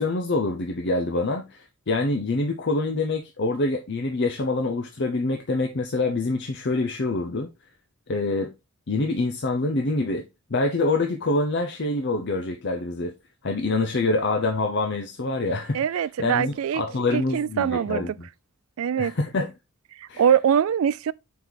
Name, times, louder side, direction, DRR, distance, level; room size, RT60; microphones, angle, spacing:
voice 1, 0.0-7.5 8.1-8.5 8.9-10.3 10.5-13.1 13.4-18.3 19.0-19.5 20.1-20.2, left 2 dB, 55° left, 0.7 m, -26 dB
voice 2, 15.7-16.8 17.1-18.1 18.8-19.1 20.0-21.1, right 8 dB, 75° right, 0.3 m, -23 dB
5.3 x 4.8 x 3.9 m
head